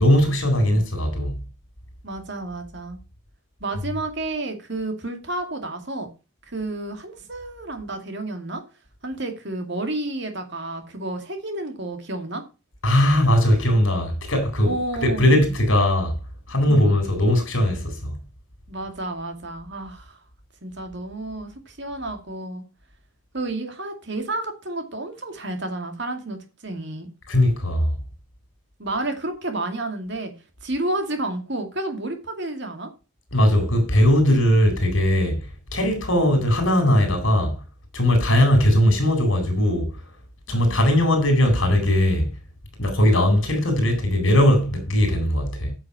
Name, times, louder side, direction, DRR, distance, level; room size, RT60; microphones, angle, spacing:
voice 1, 0.0-1.4 12.8-14.7 15.0-16.1 16.5-18.2 27.3-28.0 33.3-35.4 35.7-37.6 37.9-39.9 40.5-42.3 42.8-45.8, left 1 dB, 70° left, 4.2 m, -19 dB
voice 2, 2.0-3.0 3.6-6.1 6.5-8.6 9.0-12.4 14.6-15.4 16.7-16.9 18.7-20.2 20.6-22.6 23.3-27.1 28.8-30.3 30.6-32.9 36.1-36.3 40.5-40.8, right 2 dB, 55° right, 2.4 m, -31 dB
9.5 x 6.3 x 5.7 m
head